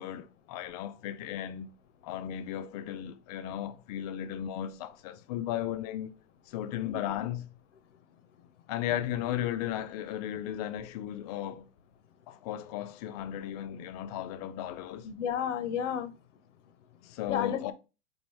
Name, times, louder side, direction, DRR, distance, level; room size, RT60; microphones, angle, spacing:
voice 1, 0.0-1.7 2.0-6.1 6.5-7.5 8.7-11.6 12.3-15.1 17.0-17.7, left 11 dB, 35° left, 0.4 m, -35 dB
voice 2, 15.0-16.1 17.3-17.7, left 8 dB, 75° left, 0.7 m, -32 dB
4.7 x 2.6 x 3.1 m
hypercardioid pair, 125°, 37 cm